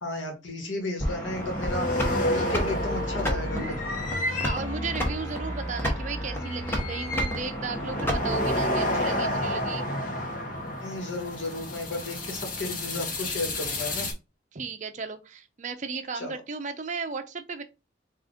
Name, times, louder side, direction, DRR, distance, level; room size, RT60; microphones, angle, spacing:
voice 1, 0.0-3.8 10.8-14.1 16.1-16.4, left 2 dB, 85° left, 1.2 m, -34 dB
sound 1, 1.0-8.6, equal, 10° left, 0.9 m, -31 dB
sound 2, 1.3-14.1, left 1 dB, 50° left, 0.9 m, -31 dB
voice 2, 4.4-9.9 14.5-17.6, right 5 dB, 40° right, 0.6 m, -35 dB
3.8 x 2.5 x 3.7 m
head